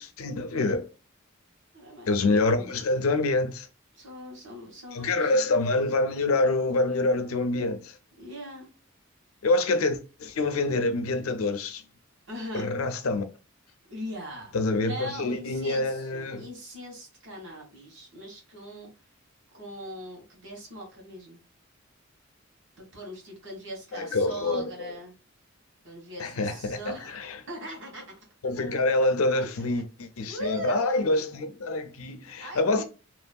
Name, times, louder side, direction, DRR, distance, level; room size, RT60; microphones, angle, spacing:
voice 1, 0.2-0.9 2.1-3.7 4.9-8.0 9.4-11.8 12.5-13.2 14.5-16.5 23.9-24.7 26.2-26.8 27.1-27.2 28.4-32.8, left 2 dB, 90° left, 0.5 m, -26 dB
voice 2, 1.7-2.1 3.9-5.5 8.2-8.7 12.3-12.7 13.9-18.9 19.5-21.4 22.8-25.1 25.8-28.1 28.5-28.8 29.3-29.5 30.3-31.2 32.4-32.8, equal, 60° right, 1.5 m, -40 dB
2.9 x 2.7 x 2.2 m
head